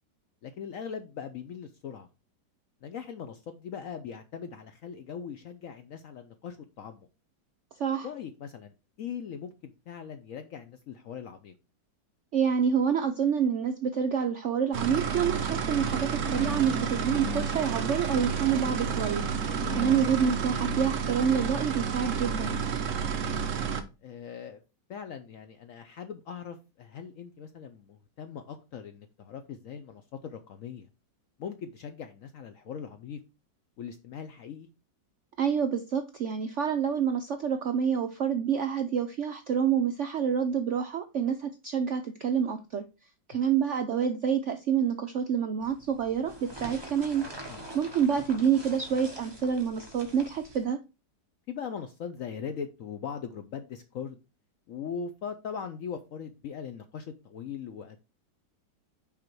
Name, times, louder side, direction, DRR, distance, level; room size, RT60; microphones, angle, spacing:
voice 1, 0.4-2.1 2.8-7.1 8.0-11.5 19.6-19.8 24.0-24.6 24.9-30.9 31.4-33.2 33.8-34.7 47.5-47.6 51.5-54.2 54.7-58.0, left 7 dB, 70° left, 0.8 m, -40 dB
voice 2, 7.8-8.1 12.3-19.2 19.7-22.6 35.4-42.8 43.3-47.3 47.7-50.8, right 7 dB, 70° right, 0.7 m, -27 dB
sound 1, 14.7-23.8, right 6 dB, 55° right, 1.0 m, -30 dB
sound 2, 45.6-50.6, right 1 dB, 15° right, 1.1 m, -45 dB
5.8 x 5.0 x 4.5 m
omnidirectional pair, 1.9 m